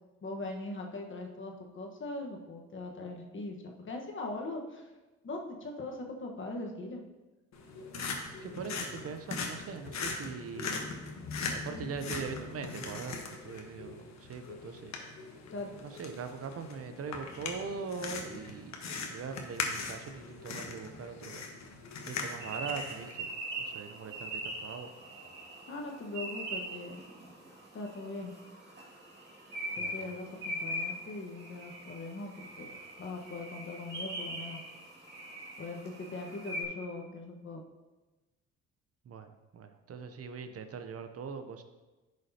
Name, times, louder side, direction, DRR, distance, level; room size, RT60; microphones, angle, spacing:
voice 1, 0.2-4.8 5.2-7.0 15.5-15.7 25.7-27.0 27.7-28.3 29.8-32.7 33.0-34.6 35.6-37.6, left 2 dB, 40° left, 1 dB, 1.3 m, -40 dB
sound 1, 7.5-23.1, left 4 dB, 65° left, 1.2 m, -40 dB
voice 2, 8.4-10.8 11.5-14.9 15.8-21.4 22.1-23.3 23.6-24.9 29.8-30.1 39.1-41.6, right 5 dB, 50° right, 8 dB, 0.7 m, -41 dB
sound 2, 22.4-36.6, right 1 dB, 35° right, 2.2 m, -42 dB
10.5 x 6.5 x 2.8 m, 1.1 s
cardioid pair, 90°, 30 cm